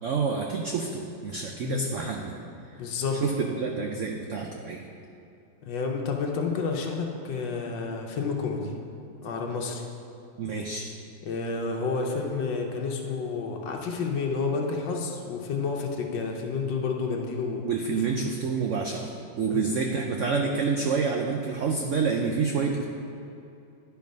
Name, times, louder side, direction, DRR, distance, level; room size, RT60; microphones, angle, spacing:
voice 1, 0.0-2.3 3.2-3.3 3.6-4.8 10.4-10.9 17.6-22.8, right 5 dB, 90° right, 2 dB, 0.6 m, -28 dB
voice 2, 2.8-3.5 5.6-8.8 9.2-9.8 11.2-17.6 19.5-19.6, left 4 dB, 90° left, 1 dB, 1.5 m, -30 dB
10.5 x 4.6 x 5.2 m, 2.7 s
omnidirectional pair, 2.0 m